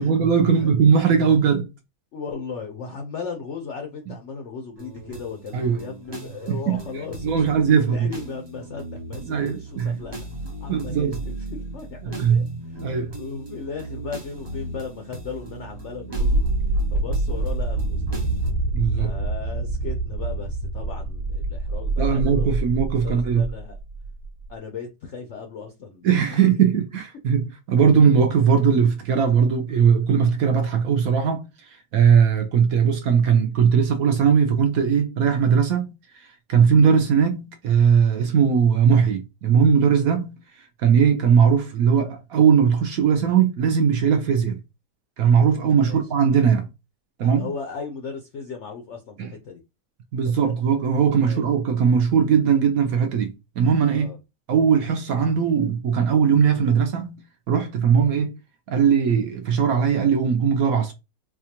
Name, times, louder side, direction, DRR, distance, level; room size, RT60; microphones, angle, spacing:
voice 1, 0.0-1.7 5.5-5.8 6.5-6.8 7.2-8.1 9.3-10.0 10.7-11.2 12.0-12.5 12.8-13.1 18.7-19.1 22.0-23.4 26.0-31.5 31.9-35.9 36.5-40.4 40.8-44.6 45.2-46.7 47.2-47.4 50.1-54.1 54.5-57.2 57.5-58.3 58.7-60.9, right 7 dB, 65° right, 0.9 m, -19 dB
voice 2, 2.1-10.2 10.6-16.4 16.9-18.3 19.0-22.7 23.0-23.8 24.5-26.5 45.8-46.0 47.2-49.6 50.4-50.5 51.2-51.5 53.9-54.2, left 5 dB, 70° left, 0.6 m, -36 dB
sound 1, 4.8-18.5, right 2 dB, 40° right, 0.3 m, -37 dB
sound 2, 16.1-24.2, right 2 dB, 15° right, 0.7 m, -25 dB
4.3 x 2.3 x 2.8 m
omnidirectional pair, 1.8 m